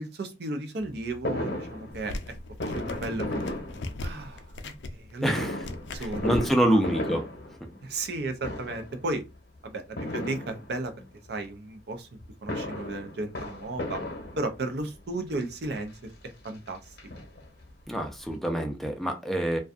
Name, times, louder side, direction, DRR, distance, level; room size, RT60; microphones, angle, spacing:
voice 1, 0.0-2.3 2.6-3.5 4.0-5.5 5.9-6.3 6.7-6.8 7.8-9.3 9.6-10.9 11.3-12.1 12.4-14.0 14.4-17.0, right 2 dB, 70° right, 0.5 m, -34 dB
Fireworks, 1.2-4.4 5.2-8.1 8.4-9.0 10.0-11.0 12.2-14.8 15.6-15.7 16.0-16.1 16.4-17.7 18.0-18.1 18.3-18.4, left 1 dB, 65° left, 0.8 m, -35 dB
sound 1, 1.9-6.6, left 2 dB, 85° left, 0.4 m, -39 dB
voice 2, 5.2-5.6 6.0-7.2 17.9-19.6, right 1 dB, ahead, 0.4 m, -26 dB
2.5 x 2.3 x 2.4 m
head